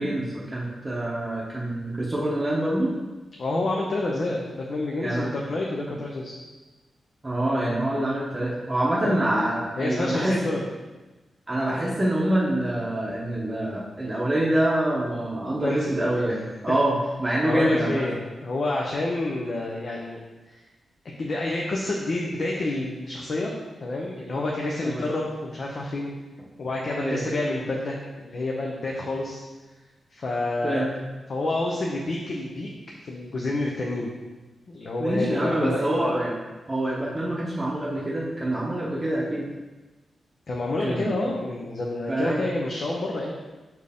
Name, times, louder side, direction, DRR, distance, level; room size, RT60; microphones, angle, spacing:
voice 1, 0.0-2.9 5.0-5.3 5.9-6.0 7.2-10.3 11.5-18.0 24.8-25.0 27.0-27.4 30.6-30.9 35.0-36.3 36.7-39.5 40.8-41.1 42.1-42.4, right 1 dB, 20° right, -6 dB, 0.8 m, -26 dB
voice 2, 3.4-6.3 9.0-9.2 9.8-10.7 15.6-15.9 16.7-16.8 17.4-20.2 20.5-20.6 21.2-23.5 23.8-26.1 26.6-29.4 30.1-30.9 31.3-32.7 33.0-34.1 34.7-36.2 40.5-43.3, left 2 dB, 50° left, -2 dB, 0.7 m, -28 dB
6.2 x 4.5 x 3.5 m, 1.2 s
wide cardioid pair, 145°, 0 cm